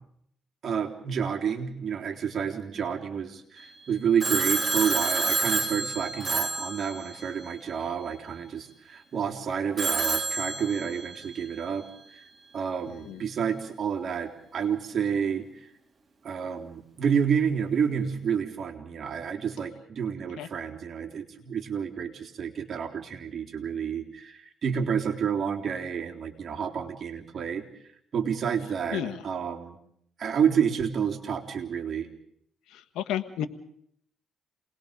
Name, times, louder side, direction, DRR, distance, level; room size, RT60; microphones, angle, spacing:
voice 1, 0.6-12.2 12.5-15.7 16.2-29.8 30.2-32.1, right 7 dB, 55° right, 2 dB, 3.4 m, -29 dB
Telephone, 4.2-7.5 9.8-11.3, right 4 dB, 35° right, 3.7 m, -28 dB
voice 2, 32.9-33.5, left 11 dB, 90° left, 10 dB, 1.4 m, -31 dB
28.5 x 20.0 x 5.2 m, 0.68 s
cardioid pair, 90°, 0 cm